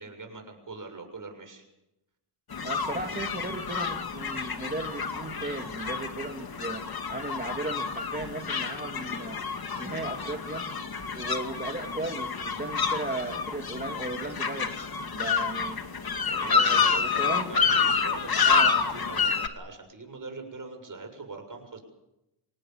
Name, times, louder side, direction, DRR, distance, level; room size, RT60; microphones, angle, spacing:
voice 1, 0.0-1.6 16.4-21.8, right 3 dB, 40° right, 4 dB, 7.2 m, -42 dB
sound 1, 2.5-19.5, left 5 dB, 45° left, 2.4 m, -28 dB
voice 2, 2.6-6.8 7.1-9.4 9.8-10.7 11.1-15.9 16.3-17.5 18.4-18.7, right 2 dB, 20° right, 2 dB, 2.6 m, -36 dB
26.5 x 18.5 x 7.5 m, 0.89 s
cardioid pair, 80°, 50 cm